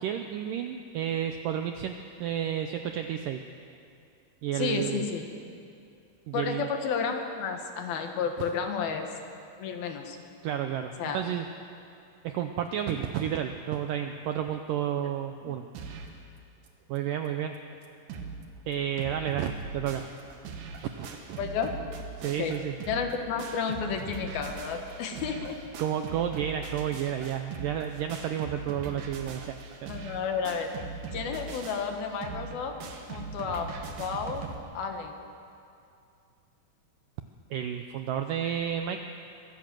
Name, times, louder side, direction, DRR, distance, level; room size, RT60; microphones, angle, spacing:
voice 1, 0.0-1.9 2.2-3.4 4.4-5.0 6.3-6.7 8.4-8.5 10.4-11.5 12.2-15.6 16.9-17.6 18.7-20.0 21.0-21.4 22.2-22.8 25.8-29.6 29.8-29.9 37.5-39.0, right 9 dB, 85° right, 6 dB, 1.9 m, -31 dB
voice 2, 4.5-5.2 6.3-9.1 9.6-10.2 10.5-10.6 11.0-11.2 15.5-15.6 21.4-21.7 22.4-22.5 22.9-25.6 29.9-30.7 31.1-32.8 33.1-33.7 34.0-34.5 34.7-35.1, left 6 dB, 70° left, 4 dB, 3.1 m, -31 dB
sound 1, 15.7-16.2 16.7-16.8 17.0-17.1 17.5-17.6 17.8-18.4 18.7-34.6, right 4 dB, 60° right, 2.7 m, -40 dB
23.5 x 15.5 x 7.7 m, 2.5 s
omnidirectional pair, 4.8 m